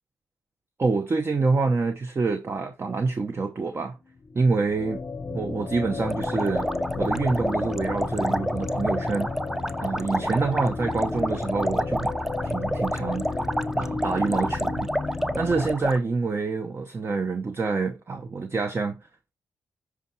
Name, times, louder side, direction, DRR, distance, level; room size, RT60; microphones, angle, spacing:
voice 1, 0.8-4.0 4.3-5.0 5.3-6.7 7.0-9.3 9.8-12.1 12.4-13.5 13.7-14.9 15.3-19.3, right 4 dB, 35° right, 0.8 m, -27 dB
sound 1, 4.2-15.7, left 4 dB, 40° left, 0.6 m, -33 dB
sound 2, 6.0-16.0, equal, 5° right, 0.6 m, -29 dB
13.5 x 4.8 x 2.8 m
cardioid pair, 65°, 7 cm